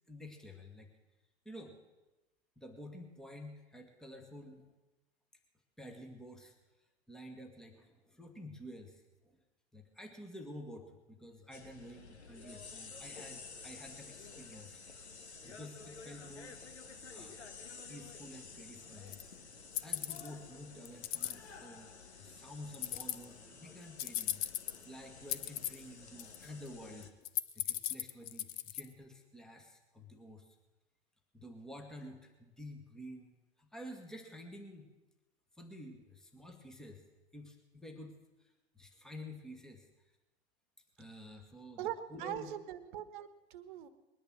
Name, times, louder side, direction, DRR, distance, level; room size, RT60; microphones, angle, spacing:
voice 1, 0.1-0.9 1.5-1.8 2.6-4.7 5.8-6.5 7.1-9.4 9.7-14.8 15.4-16.6 17.1-17.4 17.9-19.2 19.8-24.4 24.9-27.1 27.5-30.5 31.3-33.3 33.6-34.9 35.6-37.0 37.3-39.9 41.0-42.5, left 1 dB, ahead, 3 dB, 1.8 m, -50 dB
sound 1, 11.5-27.1, left 4 dB, 80° left, 1.6 m, -52 dB
sound 2, 19.1-19.2 19.7-20.3 20.9-21.3 22.7-23.2 24.0-24.8 25.3-25.8 26.2-26.7 27.0-28.9, left 13 dB, 25° left, 0.6 m, -36 dB
voice 2, 41.8-43.9, right 11 dB, 45° right, 13 dB, 1.4 m, -42 dB
21.0 x 10.5 x 6.2 m, 1.1 s
figure-of-eight pair, 105°, 33 cm